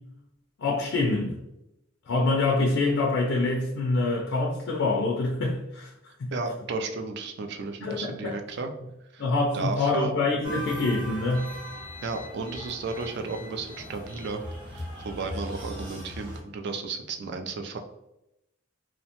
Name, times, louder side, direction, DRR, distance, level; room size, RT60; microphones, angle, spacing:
voice 1, 0.6-1.4 2.1-5.9 6.2-6.3 7.8-8.4 9.2-11.5, left 3 dB, 60° left, 0.4 m, -25 dB
voice 2, 6.3-8.7 9.1-9.3 9.5-10.1 12.0-17.8, right 4 dB, 55° right, 0.3 m, -33 dB
sound 1, 10.4-16.4, equal, 20° right, 1.0 m, -39 dB
2.7 x 2.1 x 2.8 m
head